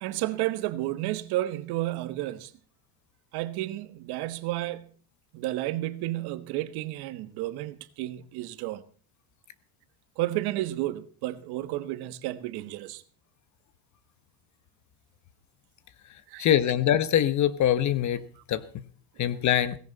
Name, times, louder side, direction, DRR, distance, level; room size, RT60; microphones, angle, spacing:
voice 1, 0.0-2.5 3.3-4.9 5.3-8.8 10.2-13.0 16.3-16.5, right 16 dB, 75° right, 1.4 m, -31 dB
voice 2, 16.4-18.2 18.5-18.6 19.2-19.8, left 11 dB, 45° left, 1.2 m, -23 dB
17.5 x 16.0 x 4.1 m
cardioid pair, 145°, 39 cm